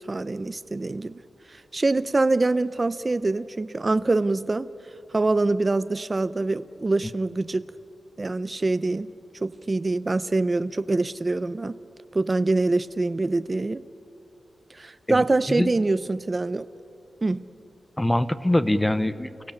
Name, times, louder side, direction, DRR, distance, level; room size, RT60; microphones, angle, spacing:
voice 1, 0.1-1.2 1.7-4.7 5.1-7.6 8.2-9.1 9.4-11.8 12.1-13.8 14.7-16.7 17.2-17.4, right 2 dB, 25° right, 14 dB, 0.6 m, -24 dB
voice 2, 15.1-15.7 18.0-19.5, left 1 dB, 10° left, 13 dB, 0.7 m, -24 dB
29.0 x 16.0 x 8.6 m, 2.8 s
wide cardioid pair, 165°, 0 cm